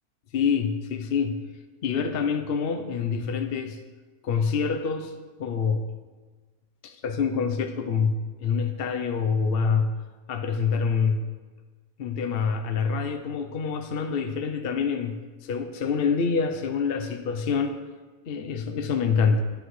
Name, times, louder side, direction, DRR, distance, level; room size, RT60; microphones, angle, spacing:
voice 1, 0.3-1.4 1.8-3.8 4.2-5.1 5.4-5.9 6.8-10.0 10.3-11.3 12.0-17.8 18.3-19.4, left 5 dB, 55° left, 6 dB, 0.7 m, -26 dB
14.5 x 10.0 x 3.2 m, 1.3 s
omnidirectional pair, 1.5 m